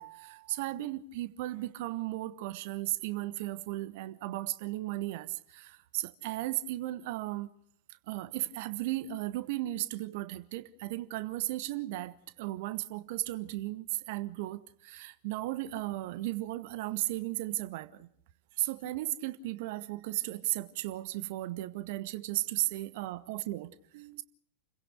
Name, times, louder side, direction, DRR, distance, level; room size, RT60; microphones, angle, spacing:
voice 1, 0.0-7.5 7.9-18.1 18.6-24.2, right 16 dB, 50° right, 1.3 m, -35 dB
29.5 x 16.5 x 6.5 m
figure-of-eight pair, 90°, 0 cm